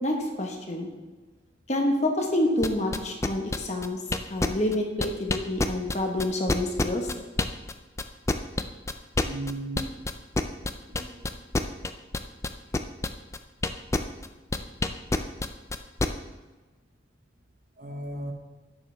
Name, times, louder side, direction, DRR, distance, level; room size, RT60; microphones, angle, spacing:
voice 1, 0.0-0.9 1.7-4.0 4.3-7.1, left 1 dB, 35° left, 1 dB, 1.4 m, -27 dB
sound 1, 2.6-7.7 8.0-14.3 14.5-16.1, left 2 dB, 15° left, 0.4 m, -26 dB
voice 2, 9.2-9.9 10.8-11.3 17.8-18.3, right 1 dB, 45° right, 3 dB, 1.1 m, -36 dB
11.5 x 8.8 x 3.5 m, 1.3 s
head